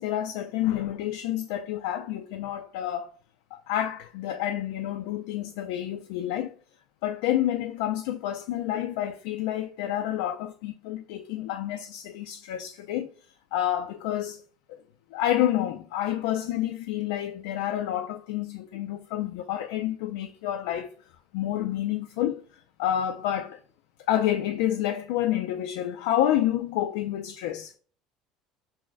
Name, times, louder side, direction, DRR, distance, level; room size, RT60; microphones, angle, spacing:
voice 1, 0.0-3.1 3.5-6.5 7.0-13.1 13.5-14.4 14.7-14.8 15.1-20.9 21.3-22.4 22.8-23.6 24.1-27.7, left 12 dB, 85° left, 0.3 m, -29 dB
6.1 x 2.0 x 2.5 m
cardioid pair, 150°, 0 cm